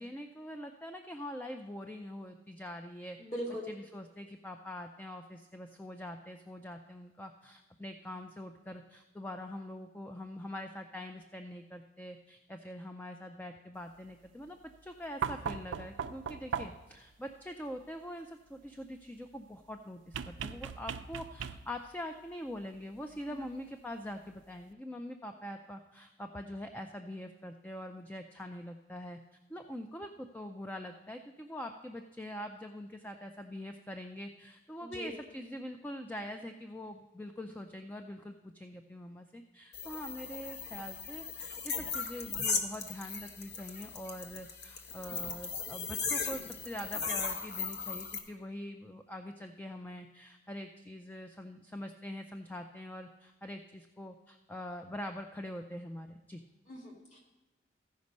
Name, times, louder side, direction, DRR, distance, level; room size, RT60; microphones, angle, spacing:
voice 1, 0.0-3.2 3.7-29.2 29.5-56.4, left 1 dB, 10° left, 5 dB, 0.3 m, -44 dB
voice 2, 3.2-3.7 23.3-23.4 34.8-35.1 56.7-57.2, equal, 40° left, -2 dB, 2.2 m, -40 dB
sound 1, 15.2-17.0 20.1-21.9 23.4-23.5, right 7 dB, 90° right, 0.4 m, -38 dB
sound 2, 39.7-48.2, left 5 dB, 60° left, 0.9 m, -37 dB
14.5 x 5.2 x 5.3 m, 1.1 s
head